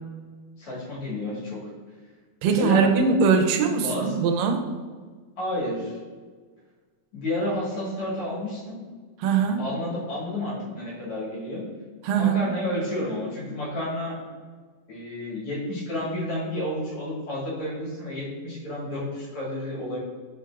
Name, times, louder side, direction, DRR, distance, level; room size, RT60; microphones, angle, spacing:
voice 1, 0.6-1.6 2.4-2.9 3.8-4.3 5.4-6.0 7.1-8.8 9.6-11.6 12.1-14.2 14.9-20.0, left 1 dB, 50° left, -7 dB, 1.8 m, -30 dB
voice 2, 2.4-4.6 9.2-9.6 12.0-12.5, right 5 dB, 85° right, 5 dB, 2.2 m, -21 dB
5.0 x 4.5 x 2.3 m, 1.5 s
omnidirectional pair, 4.0 m